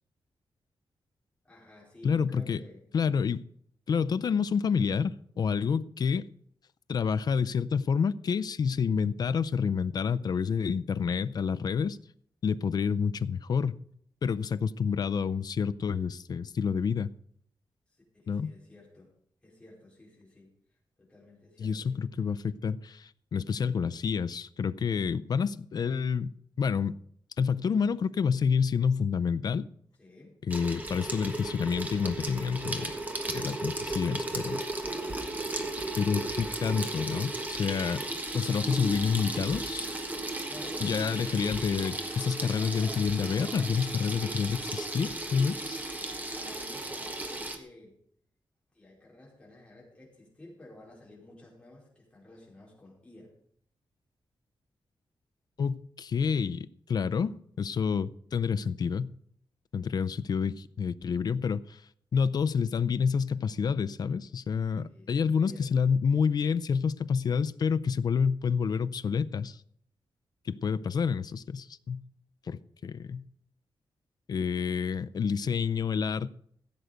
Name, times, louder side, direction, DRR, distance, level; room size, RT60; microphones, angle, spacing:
voice 1, 1.4-2.8 17.9-19.1 19.4-22.0 30.0-30.4 40.2-41.5 46.1-48.0 48.7-53.3 64.7-65.7, left 1 dB, 10° left, 4.7 m, -53 dB
voice 2, 2.0-2.6 2.9-3.4 3.9-6.3 6.9-12.0 12.4-13.8 14.2-17.1 18.3-18.5 21.6-27.0 27.4-29.7 30.5-32.9 33.3-34.6 36.0-38.0 38.3-39.9 40.8-45.8 55.6-59.1 59.7-61.8 62.1-69.6 70.5-72.0 72.5-73.2 74.3-76.3, left 6 dB, 50° left, 0.4 m, -28 dB
Water tap faucet / Sink (filling or washing), 30.5-47.6, right 2 dB, 20° right, 1.4 m, -35 dB
15.5 x 8.0 x 5.1 m
wide cardioid pair, 175°, 9 cm